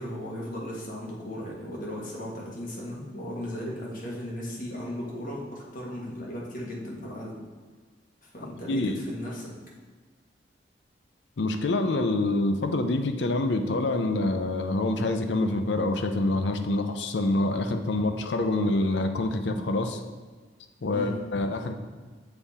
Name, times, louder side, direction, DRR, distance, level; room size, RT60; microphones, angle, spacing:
voice 1, 0.0-7.4 8.2-9.5 20.9-21.1, equal, 50° left, -4 dB, 1.5 m, -36 dB
voice 2, 8.7-9.0 11.4-20.0 20.8-21.8, left 2 dB, 70° left, 7 dB, 0.5 m, -26 dB
7.0 x 3.6 x 4.1 m, 1.5 s
head